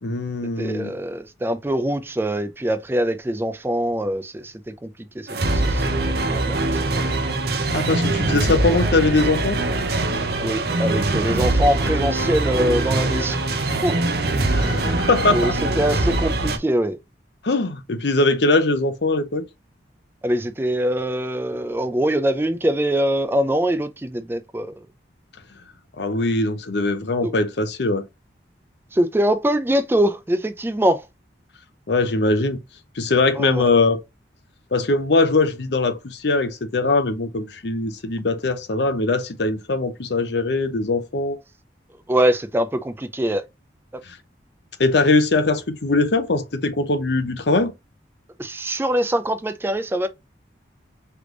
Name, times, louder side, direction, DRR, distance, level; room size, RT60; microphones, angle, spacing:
voice 1, 0.0-0.9 7.5-9.6 14.5-15.6 17.4-19.5 26.0-28.0 31.9-32.6 33.0-34.0 34.7-41.4 44.1-44.2 44.8-47.7, left 3 dB, 65° left, 0.7 m, -21 dB
voice 2, 0.6-4.9 5.1-5.3 5.6-6.9 10.4-13.4 13.8-13.9 14.6-14.8 15.3-17.0 20.2-24.7 27.2-27.3 28.9-31.1 33.4-33.7 42.1-43.4 48.4-50.1, right 1 dB, 10° right, 0.3 m, -23 dB
sound 1, 5.3-16.6, right 2 dB, 55° right, 0.7 m, -22 dB
3.4 x 3.2 x 3.7 m
head